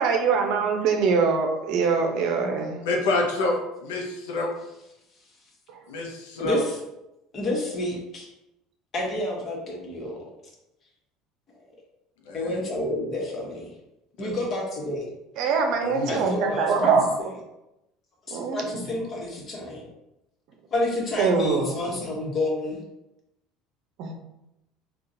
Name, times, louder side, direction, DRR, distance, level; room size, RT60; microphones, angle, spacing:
voice 1, 0.0-2.8 15.4-17.0 18.3-18.9 21.2-22.0 24.0-24.1, right 5 dB, 65° right, 3 dB, 0.6 m, -23 dB
voice 2, 2.8-3.6 3.8-4.5 5.9-6.6 12.3-12.6 14.2-14.4 15.8-16.3, left 2 dB, 80° left, 0 dB, 0.6 m, -27 dB
voice 3, 6.4-6.7 7.3-8.3 8.9-10.2 12.3-13.7 14.2-15.1 16.1-16.9 18.3-19.9 20.7-22.8, left 1 dB, 40° left, -1 dB, 1.1 m, -29 dB
3.7 x 2.4 x 2.7 m, 0.90 s
hypercardioid pair, 80°, 0 cm